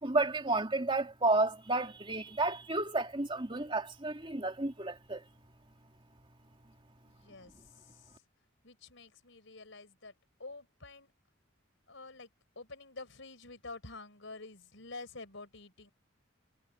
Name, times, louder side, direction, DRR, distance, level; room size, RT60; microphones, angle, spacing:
voice 1, 0.0-5.2, right 2 dB, 25° right, 2.7 m, -31 dB
voice 2, 7.0-8.2 8.6-10.1 10.4-11.1 11.9-12.3 12.5-15.9, left 3 dB, 70° left, 4.7 m, -48 dB
head